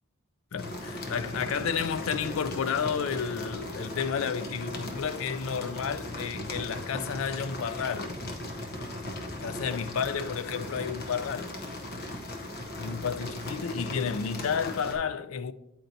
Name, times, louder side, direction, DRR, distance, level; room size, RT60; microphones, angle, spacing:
voice 1, 0.5-8.1 9.4-11.5 12.8-15.5, left 6 dB, 70° left, 0.4 m, -31 dB
sound 1, 0.6-15.0, left 1 dB, 50° left, 0.8 m, -38 dB
8.9 x 4.4 x 2.7 m
head